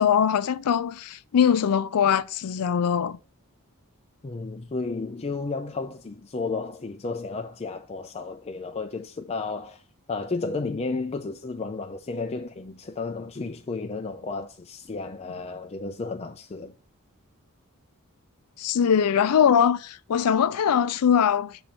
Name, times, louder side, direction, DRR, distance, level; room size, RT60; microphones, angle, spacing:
voice 1, 0.0-3.2 18.6-21.6, left 8 dB, 90° left, 0.4 m, -22 dB
voice 2, 4.2-9.8 10.1-16.7, left 3 dB, 30° left, 0.4 m, -32 dB
6.3 x 4.4 x 5.4 m
head